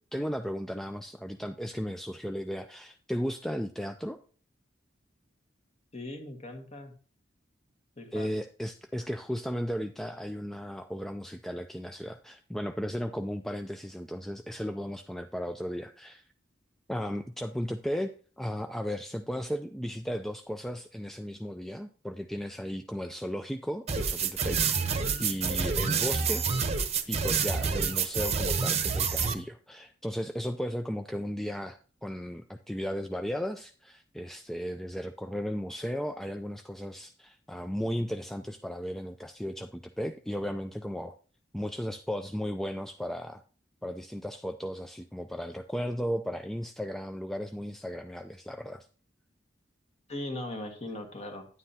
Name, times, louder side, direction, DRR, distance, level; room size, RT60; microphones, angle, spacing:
voice 1, 0.1-4.2 8.1-16.2 16.9-24.9 25.2-26.5 27.1-41.1 41.5-43.4 43.8-48.9, equal, ahead, 6 dB, 0.3 m, -35 dB
voice 2, 5.9-6.9 8.0-8.3 50.1-51.5, left 1 dB, 35° left, 6 dB, 1.4 m, -39 dB
sound 1, 23.9-29.3, right 5 dB, 35° right, 0.8 m, -28 dB
9.8 x 9.6 x 2.8 m, 0.40 s
head